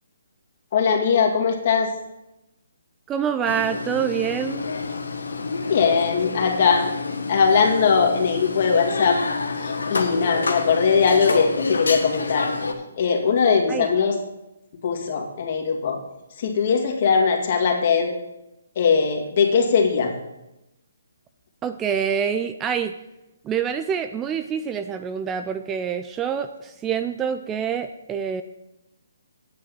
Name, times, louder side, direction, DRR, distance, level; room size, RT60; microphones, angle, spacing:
voice 1, 0.7-1.9 5.7-6.9 7.3-9.2 9.6-12.5 13.0-14.1 14.8-16.0 16.4-18.1 18.8-20.1, left 5 dB, 45° left, 2 dB, 2.2 m, -20 dB
voice 2, 3.1-4.7 13.7-13.9 21.6-23.0 23.4-28.4, right 8 dB, 15° right, 9 dB, 0.4 m, -26 dB
sound 1, 3.4-12.7, left 3 dB, 85° left, 1.3 m, -28 dB
9.5 x 7.5 x 6.0 m, 0.92 s
hypercardioid pair, 150°, 0 cm